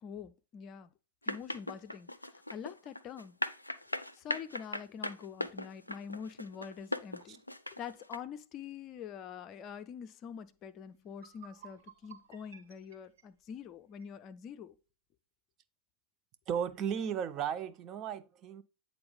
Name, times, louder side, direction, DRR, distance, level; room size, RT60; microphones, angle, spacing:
voice 1, 0.0-0.9 1.3-2.1 2.5-3.4 4.1-7.3 7.7-14.8, left 7 dB, 35° left, 0.6 m, -45 dB
sound 1, 1.2-8.2, left 1 dB, 85° left, 0.4 m, -38 dB
sound 2, 10.6-10.7 11.1-14.2, right 8 dB, 60° right, 1.3 m, -56 dB
voice 2, 16.5-18.6, right 8 dB, 35° right, 0.6 m, -35 dB
8.7 x 3.9 x 3.4 m
figure-of-eight pair, 90°, 0 cm